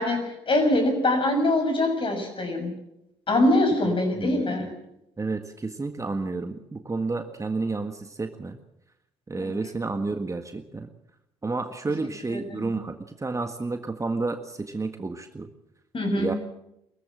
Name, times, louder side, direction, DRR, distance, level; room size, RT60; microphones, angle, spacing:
voice 1, 0.0-2.8 3.3-4.7 9.4-9.5 12.3-12.7 15.9-16.4, left 1 dB, 40° left, 5 dB, 6.9 m, -24 dB
voice 2, 3.8-4.4 5.2-8.6 9.3-10.9 11.4-15.5 16.2-16.3, right 3 dB, 20° right, 7 dB, 1.7 m, -31 dB
23.5 x 15.0 x 7.5 m, 0.85 s
hypercardioid pair, 50°, 14 cm